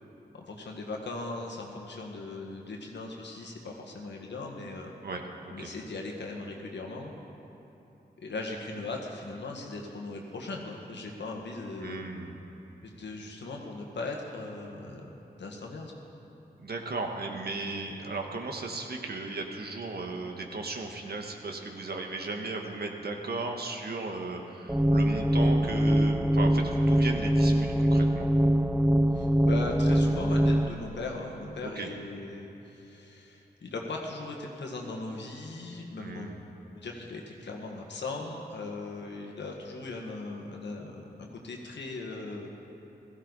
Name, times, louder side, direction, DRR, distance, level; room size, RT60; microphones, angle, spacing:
voice 1, 0.3-4.9 5.5-7.1 8.2-12.1 12.8-15.1 15.4-15.9 29.1-36.3 36.7-42.5, left 2 dB, 85° left, 0 dB, 1.7 m, -38 dB
voice 2, 5.0-5.7 11.8-12.4 16.6-28.3 31.6-31.9 36.0-36.4, right 3 dB, 65° right, 2 dB, 1.5 m, -36 dB
sound 1, 24.7-30.7, equal, 5° right, 0.5 m, -23 dB
16.0 x 14.5 x 4.1 m, 3.0 s
cardioid pair, 50°, 18 cm